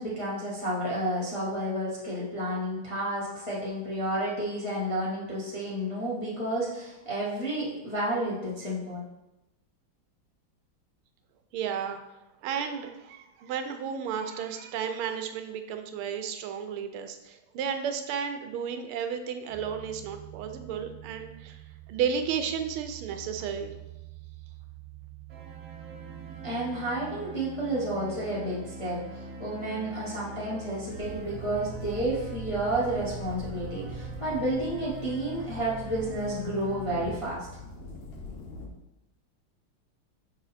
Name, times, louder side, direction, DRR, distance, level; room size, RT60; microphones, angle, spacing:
voice 1, 0.0-9.0 26.4-37.5, right 1 dB, 20° left, -7 dB, 0.8 m, -31 dB
voice 2, 11.5-12.0 12.4-21.6 21.9-23.7, right 7 dB, 90° right, 7 dB, 1.5 m, -33 dB
sound 1, 19.5-34.6, right 17 dB, ahead, 1.7 m, -46 dB
sound 2, 25.3-37.1, right 3 dB, 55° right, 0.8 m, -43 dB
sound 3, 30.9-38.7, left 2 dB, 80° left, 0.5 m, -44 dB
6.1 x 3.9 x 4.2 m, 0.96 s
omnidirectional pair, 2.3 m